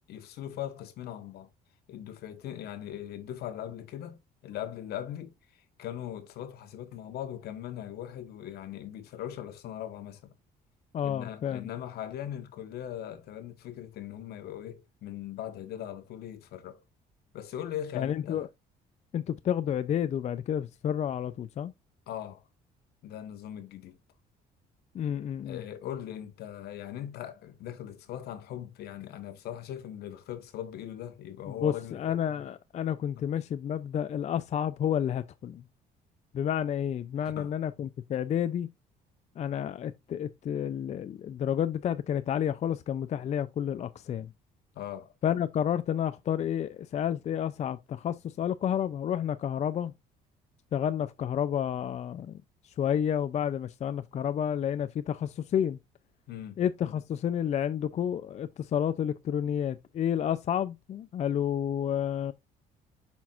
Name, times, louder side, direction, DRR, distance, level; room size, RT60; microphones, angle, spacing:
voice 1, 0.1-1.5 1.9-4.2 4.4-5.3 5.8-10.3 11.0-16.8 17.3-18.4 22.1-22.5 23.0-24.0 25.4-32.0 37.2-37.5 44.7-45.1 56.3-56.6, left 11 dB, 70° left, 1.3 m, -40 dB
voice 2, 10.9-11.7 17.9-18.5 19.1-21.7 24.9-25.6 31.5-35.6 36.3-38.7 39.4-44.3 45.2-49.9 50.7-55.8 56.6-62.3, left 9 dB, 40° left, 0.4 m, -30 dB
7.1 x 6.0 x 2.4 m
cardioid pair, 110°, 17 cm